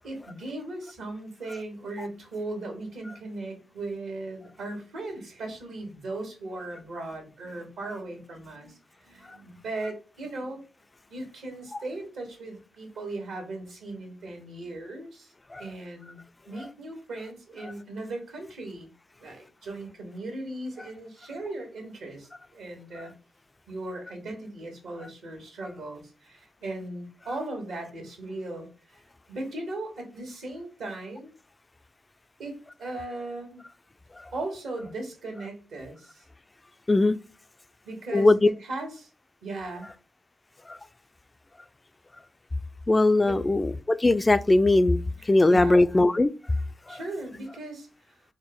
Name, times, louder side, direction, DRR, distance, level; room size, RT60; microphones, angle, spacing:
voice 1, 0.0-10.6 11.1-15.3 15.6-16.2 16.4-18.9 19.2-23.1 23.7-29.0 29.3-31.3 32.4-33.6 34.3-36.2 37.8-39.1 39.4-39.9 43.2-43.5 45.2-45.9 46.9-48.1, right 2 dB, 80° right, 1.4 m, -38 dB
voice 2, 38.1-38.5 40.7-40.8 42.9-45.0 45.3-46.3 46.9-47.0, left 2 dB, 30° left, 0.3 m, -20 dB
4.3 x 2.0 x 3.5 m
supercardioid pair, 45°, 0 cm